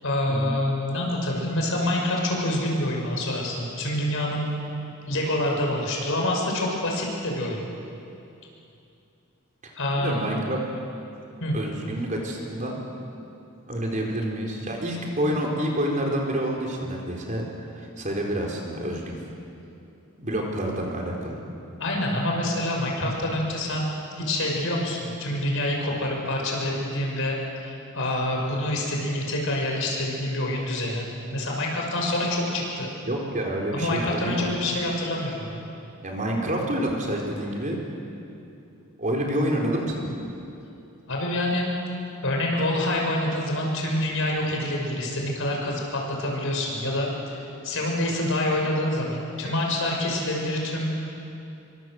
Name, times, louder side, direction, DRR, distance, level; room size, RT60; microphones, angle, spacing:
voice 1, 0.0-4.5 5.1-7.6 9.8-10.2 11.4-11.5 21.8-23.9 24.2-27.4 27.6-31.1 31.3-32.9 33.7-35.6 41.1-41.7 42.2-51.2, left 1 dB, 60° left, -1 dB, 6.2 m, -26 dB
voice 2, 9.6-10.6 11.5-12.8 13.7-17.5 17.8-19.2 20.2-21.4 33.1-34.4 36.0-37.8 39.0-40.1, right 1 dB, 35° right, -1 dB, 4.3 m, -28 dB
27.0 x 24.5 x 7.9 m, 2.7 s
head